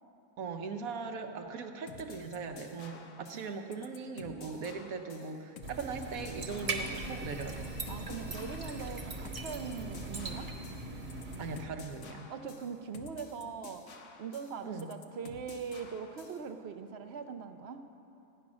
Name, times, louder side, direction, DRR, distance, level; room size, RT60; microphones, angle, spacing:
voice 1, 0.4-7.7 11.4-12.3 14.6-14.9, right 4 dB, 75° right, 5 dB, 1.3 m, -40 dB
sound 1, 1.9-16.5, left 5 dB, 60° left, 1.2 m, -52 dB
voice 2, 3.3-3.7 4.4-4.9 6.8-7.3 7.9-10.5 12.3-13.9 14.2-17.8, right 6 dB, 55° right, 7 dB, 0.8 m, -42 dB
sound 2, 5.6-11.6, right 2 dB, 35° right, 1.3 m, -40 dB
15.0 x 9.6 x 6.2 m, 2.9 s
omnidirectional pair, 1.6 m